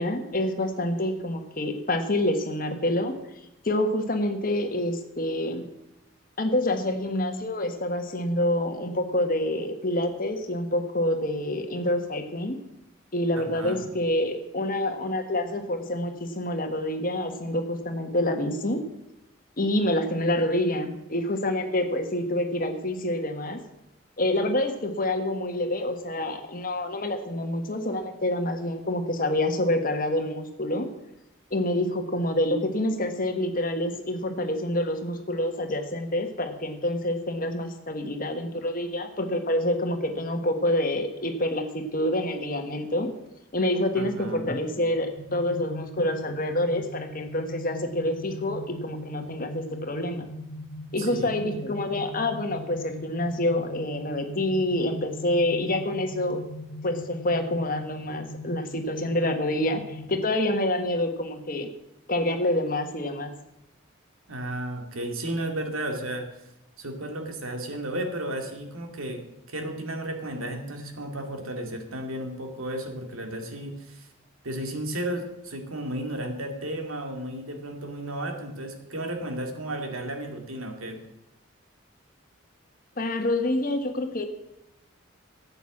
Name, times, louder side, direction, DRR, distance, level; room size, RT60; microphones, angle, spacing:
voice 1, 0.0-3.1 3.6-5.7 6.4-12.6 13.1-18.8 19.6-23.6 24.2-30.9 31.5-43.1 43.5-50.3 50.9-56.4 56.8-61.7 62.1-63.3 83.0-84.2, left 1 dB, 45° left, 6 dB, 1.5 m, -27 dB
voice 2, 13.4-13.8 43.9-44.5 51.0-51.3 64.3-66.3 66.8-69.2 69.5-74.1 74.4-81.0, right 1 dB, 90° right, 5 dB, 2.2 m, -33 dB
sound 1, 45.2-60.2, left 1 dB, 65° left, 1.9 m, -40 dB
13.5 x 8.3 x 7.3 m, 0.88 s
head